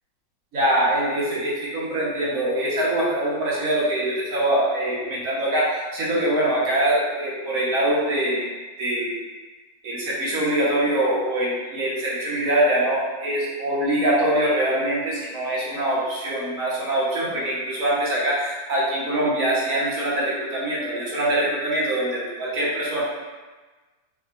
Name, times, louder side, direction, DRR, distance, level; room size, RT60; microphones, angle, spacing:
voice 1, 0.5-8.5 8.8-9.2 9.8-23.0, right 1 dB, 55° right, -7 dB, 1.1 m, -23 dB
3.4 x 2.6 x 2.4 m, 1.3 s
omnidirectional pair, 2.0 m